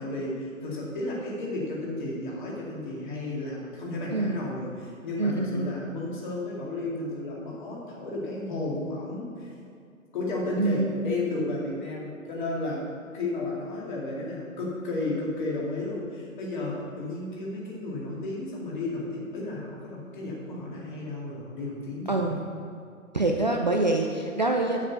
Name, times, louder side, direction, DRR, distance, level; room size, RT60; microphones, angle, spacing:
voice 1, 0.0-9.5 10.1-22.3, left 2 dB, 35° left, -4 dB, 2.4 m, -33 dB
voice 2, 5.2-5.7 10.6-10.8 22.1-22.4 23.1-24.8, right 2 dB, 35° right, 1 dB, 0.4 m, -25 dB
7.5 x 7.3 x 6.5 m, 2.4 s
figure-of-eight pair, 140°, 42 cm